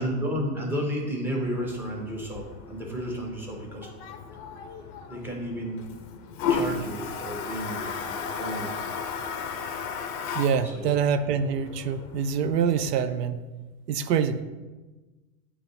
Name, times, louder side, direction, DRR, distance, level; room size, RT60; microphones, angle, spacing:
voice 1, 0.0-3.9 5.1-5.8 6.5-8.8 10.6-11.0, equal, 5° right, -1 dB, 0.9 m, -32 dB
Toilet flush, 1.4-13.0, left 5 dB, 35° left, 0.6 m, -35 dB
voice 2, 10.3-13.4 13.9-14.4, right 7 dB, 80° right, 11 dB, 0.6 m, -25 dB
8.2 x 3.0 x 3.9 m, 1.2 s
hypercardioid pair, 125°, 48 cm